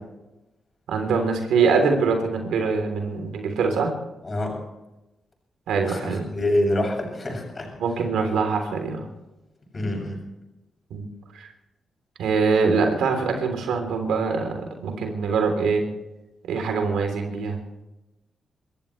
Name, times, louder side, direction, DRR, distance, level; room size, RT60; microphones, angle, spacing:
voice 1, 0.9-3.9 5.7-6.2 7.8-9.1 10.9-11.1 11.3-11.5 12.2-15.8 16.5-17.6, right 5 dB, 90° right, 4 dB, 3.4 m, -23 dB
voice 2, 4.2-4.6 5.9-7.7 9.7-10.2, left 1 dB, 40° left, 1 dB, 7.4 m, -26 dB
26.5 x 14.5 x 3.3 m, 0.97 s
cardioid pair, 60°, 0 cm